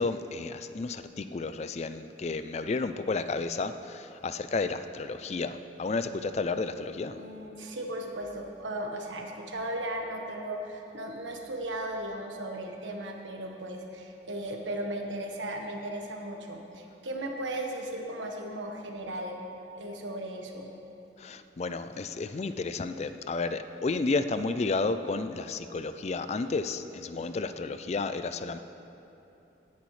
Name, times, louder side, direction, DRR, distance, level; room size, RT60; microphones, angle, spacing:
voice 1, 0.0-7.2 21.2-28.6, left 3 dB, 35° left, 11 dB, 0.4 m, -32 dB
voice 2, 7.1-19.4 19.8-20.7, right 1 dB, 90° right, 2 dB, 1.3 m, -36 dB
17.0 x 10.0 x 3.2 m, 3.0 s
head